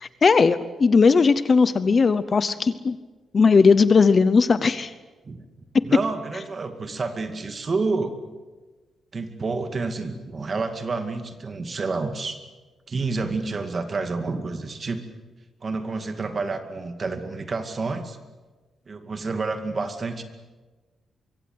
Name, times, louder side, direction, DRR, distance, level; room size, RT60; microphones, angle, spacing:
voice 1, 0.0-3.0 3.3-4.9, left 4 dB, 30° left, 14 dB, 0.8 m, -18 dB
voice 2, 5.8-8.1 9.1-12.4 12.9-15.0 15.6-18.2 18.9-20.2, right 3 dB, 30° right, 7 dB, 2.3 m, -29 dB
24.5 x 24.0 x 8.0 m, 1.3 s
wide cardioid pair, 165°, 0 cm